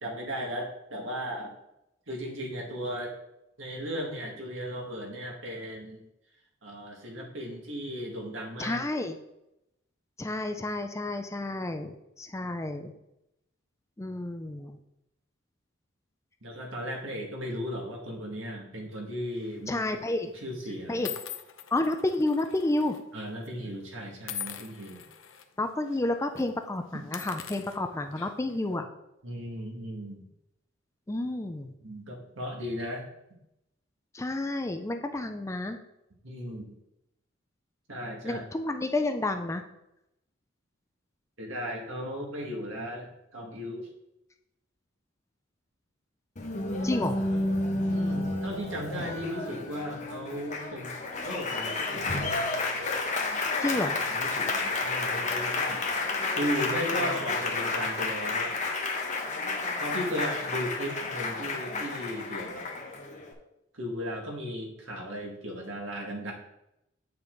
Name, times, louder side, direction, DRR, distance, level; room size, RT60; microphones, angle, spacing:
voice 1, 0.0-1.5 2.1-3.1 3.6-6.0 6.6-8.9 16.4-19.8 20.4-21.1 23.1-25.0 28.7-28.8 29.2-30.2 31.8-33.0 36.2-36.7 37.9-38.4 41.4-43.9 47.9-52.3 53.7-55.9 56.3-58.6 59.8-62.6 63.7-66.3, equal, 70° right, -1 dB, 2.0 m, -36 dB
voice 2, 8.6-9.2 10.2-12.9 14.0-14.8 19.7-20.3 20.9-21.1 21.7-23.0 25.6-28.9 31.1-31.7 34.1-35.8 38.2-39.6 46.8-47.2 53.6-54.0, left 2 dB, 15° left, 6 dB, 0.4 m, -30 dB
sound 1, 19.4-19.7 20.4-20.5 21.0-23.0 23.3-23.5 24.2-25.4 25.9-26.0 26.3-26.5 27.0-28.6, left 9 dB, 70° left, 0.7 m, -42 dB
Applause, 46.4-63.3, left 3 dB, 35° left, 1.0 m, -31 dB
8.4 x 5.7 x 3.9 m, 0.86 s
head